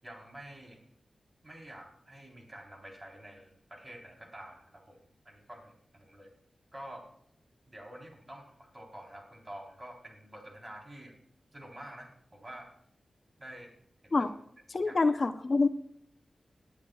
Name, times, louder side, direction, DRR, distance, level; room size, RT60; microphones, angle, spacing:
voice 1, 0.0-0.8 1.4-5.0 5.2-6.3 6.7-7.1 7.7-11.1 11.5-12.7 13.4-13.7 14.0-14.3 14.8-15.0, right 1 dB, 30° right, 0 dB, 3.7 m, -48 dB
voice 2, 14.7-15.7, left 3 dB, 50° left, 8 dB, 0.7 m, -26 dB
19.5 x 8.4 x 2.4 m, 0.71 s
cardioid pair, 70°, 0 cm